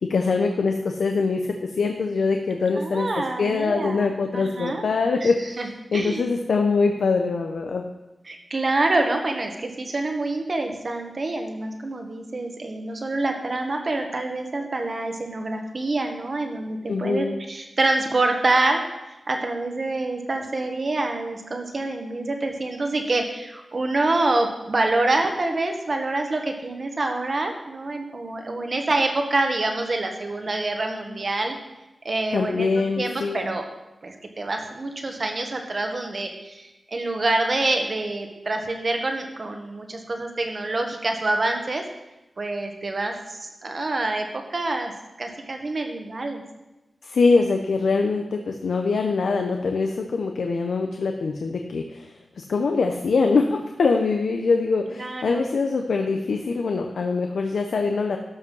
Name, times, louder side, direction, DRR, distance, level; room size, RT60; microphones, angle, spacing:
voice 1, 0.0-5.6 5.9-7.8 16.9-17.4 32.3-33.5 47.0-58.2, left 4 dB, 80° left, 4 dB, 0.8 m, -23 dB
voice 2, 2.8-4.1 4.3-4.8 5.2-5.3 5.6-5.7 5.9-6.2 8.3-18.8 19.3-31.6 32.0-33.6 34.0-41.8 42.4-44.9 45.2-46.4 54.9-55.5, right 2 dB, 40° right, 4 dB, 1.4 m, -26 dB
13.0 x 5.4 x 5.5 m, 1.0 s
wide cardioid pair, 135°, 0 cm